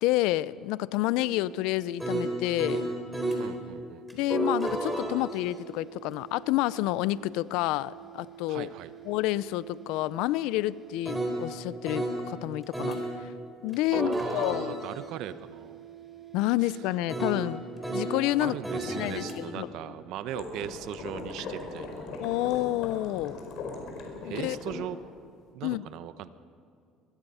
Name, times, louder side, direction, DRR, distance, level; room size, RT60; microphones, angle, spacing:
voice 1, 0.0-2.8 4.1-8.7 9.1-13.3 13.6-14.8 16.3-17.6 17.9-18.6 18.9-19.7 22.2-23.4 24.3-24.9 25.6-25.8, left 17 dB, 80° left, 19 dB, 0.5 m, -29 dB
sound 1, 1.1-3.5 4.1-12.2 12.7-13.1 13.7-18.2 18.6-19.3, right 2 dB, 5° right, 4.2 m, -35 dB
voice 2, 3.4-4.2 8.5-8.9 13.9-15.9 16.6-16.8 18.4-22.1 24.2-25.0 25.5-26.3, right 11 dB, 70° right, 13 dB, 0.9 m, -39 dB
sound 2, 20.3-24.8, left 3 dB, 65° left, 4.7 m, -39 dB
23.0 x 21.0 x 5.6 m, 2.3 s
cardioid pair, 125°, 0 cm